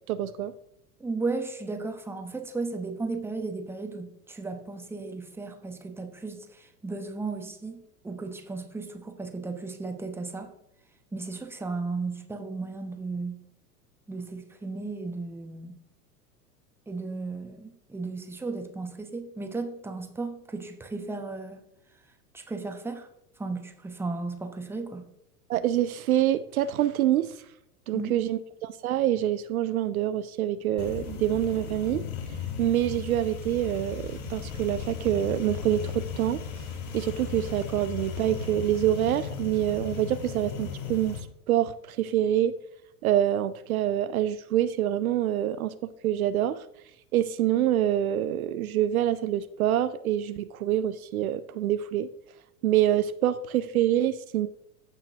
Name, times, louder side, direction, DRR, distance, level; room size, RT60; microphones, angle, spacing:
voice 1, 0.1-0.5 25.5-27.4 27.9-32.1 32.6-36.4 36.9-41.2 41.5-42.5 43.0-46.6 47.1-52.1 52.6-54.5, right 12 dB, 65° right, 0.6 m, -26 dB
voice 2, 1.0-10.5 11.1-13.4 14.1-15.8 16.9-21.6 22.3-23.1 23.4-25.1 27.9-28.2, right 3 dB, 5° right, 1.0 m, -35 dB
sound 1, 30.8-41.2, left 5 dB, 50° left, 1.6 m, -36 dB
15.0 x 5.7 x 2.7 m
figure-of-eight pair, 85°, 47 cm